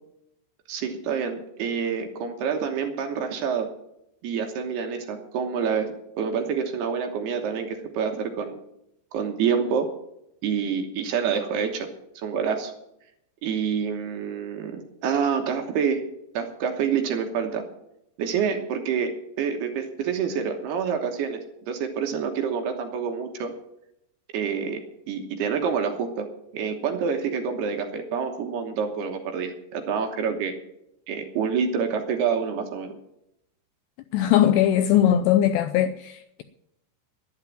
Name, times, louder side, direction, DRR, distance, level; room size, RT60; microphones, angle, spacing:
voice 1, 0.7-3.7 4.2-8.6 9.1-9.9 10.4-11.9 12.2-12.7 13.4-16.1 16.3-17.6 18.2-21.4 21.7-23.5 24.3-24.8 25.1-26.3 26.5-30.5 31.1-33.0, right 6 dB, 70° right, 2.9 m, -27 dB
voice 2, 34.1-36.4, left 11 dB, 85° left, 2.5 m, -20 dB
11.5 x 10.5 x 7.5 m
omnidirectional pair, 5.5 m